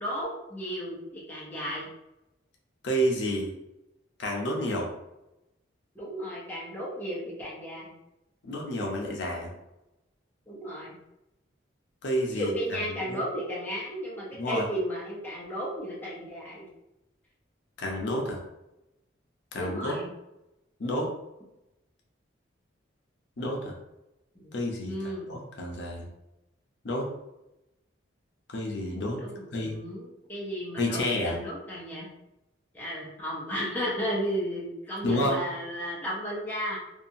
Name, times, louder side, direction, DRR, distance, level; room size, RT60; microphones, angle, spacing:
voice 1, 0.0-1.9 6.0-7.9 10.5-11.0 12.3-16.6 19.5-20.1 24.4-24.5 24.9-25.3 29.2-32.1 32.7-36.8, equal, 10° left, -6 dB, 0.6 m, -34 dB
voice 2, 2.8-3.5 4.2-4.9 8.4-9.5 12.0-13.2 14.3-14.6 17.8-18.4 19.5-19.9 20.8-21.1 23.4-23.7 24.5-26.1 26.8-27.1 28.5-29.2 29.5-29.8 30.8-31.4 35.0-35.4, equal, 65° left, -1 dB, 0.5 m, -30 dB
2.7 x 2.4 x 2.6 m, 0.91 s
head